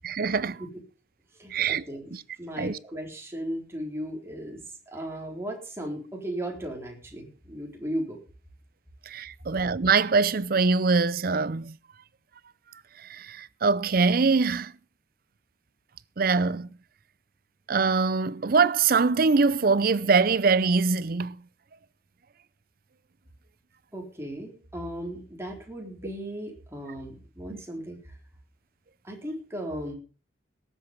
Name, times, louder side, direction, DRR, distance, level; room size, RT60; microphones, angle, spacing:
voice 1, 0.0-0.6 1.5-1.8 2.1-2.2 2.6-2.8 9.1-11.8 13.0-14.7 16.2-16.7 17.7-21.4 27.5-27.6, right 4 dB, 55° right, 0.6 m, -23 dB
voice 2, 1.4-2.1 2.4-8.2 23.9-28.2 29.0-29.9, equal, 15° right, 4.0 m, -36 dB
18.5 x 8.3 x 5.4 m
head